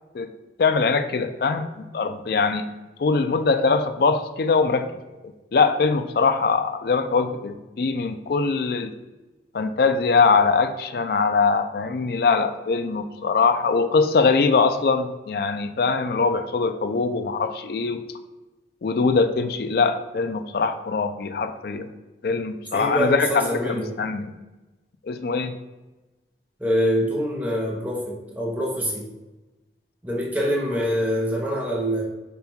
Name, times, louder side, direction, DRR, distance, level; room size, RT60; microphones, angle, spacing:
voice 1, 0.6-1.7 1.9-2.7 3.0-4.9 5.5-8.9 9.5-18.0 18.8-21.9 22.2-24.3 25.0-25.6, left 4 dB, 55° left, 8 dB, 0.4 m, -22 dB
voice 2, 22.7-23.9 26.6-29.1 30.0-32.0, equal, 10° right, -3 dB, 0.6 m, -25 dB
5.3 x 2.3 x 4.3 m, 1.1 s
head